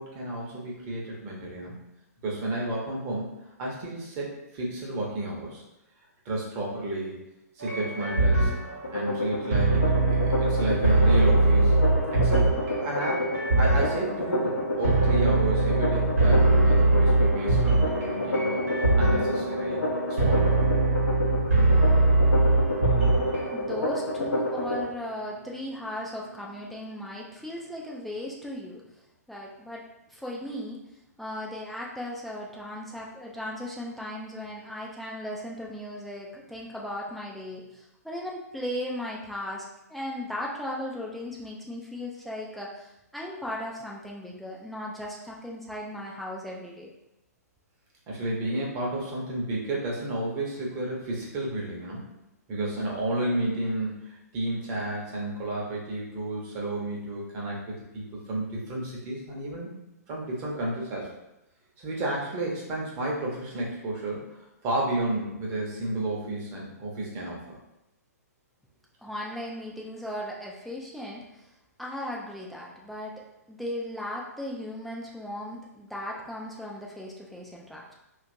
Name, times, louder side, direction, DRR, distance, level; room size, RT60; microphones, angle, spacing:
voice 1, 0.0-1.8 2.2-5.6 6.2-7.2 7.6-8.5 8.9-11.8 12.1-19.8 20.1-20.6 48.1-52.1 52.5-59.7 60.1-61.1 61.8-64.3 64.6-67.4, right 1 dB, 30° right, -3 dB, 0.8 m, -32 dB
sound 1, 7.6-23.5, right 2 dB, 55° right, 1.0 m, -23 dB
sound 2, 8.8-24.8, left 1 dB, 70° left, 0.6 m, -29 dB
sound 3, 16.3-27.3, left 1 dB, 80° right, 0.7 m, -40 dB
voice 2, 23.5-28.8 29.3-29.8 30.1-30.8 31.2-39.6 39.9-46.9 69.0-71.5 71.8-73.1 73.5-77.9, left 1 dB, ahead, -3 dB, 0.3 m, -37 dB
2.8 x 2.4 x 2.6 m, 0.89 s
figure-of-eight pair, 115°, 9 cm